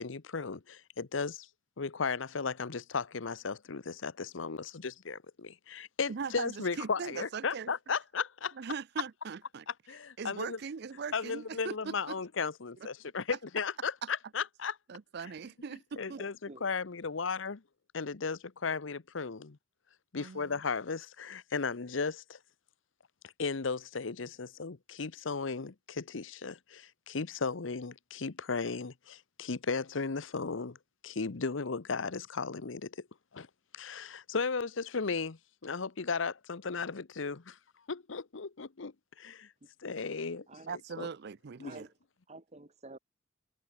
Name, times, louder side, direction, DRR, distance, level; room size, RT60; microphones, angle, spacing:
voice 1, 0.0-1.5 1.8-8.5 9.7-10.6 11.1-14.8 16.0-17.6 17.9-19.6 20.1-22.4 23.4-30.8 31.0-33.1 33.3-33.5 33.7-37.6 37.9-39.5 39.8-41.1 41.6-41.7, left 5 dB, 75° left, 0.9 m, -35 dB
voice 2, 6.1-7.7 8.6-9.7 10.2-12.2 14.9-16.2 20.2-20.6 40.7-41.9, right 5 dB, 55° right, 0.5 m, -40 dB
voice 3, 16.1-16.7 39.6-39.7 40.5-40.8 41.6-41.9 42.3-43.0, right 2 dB, 35° right, 2.0 m, -50 dB
head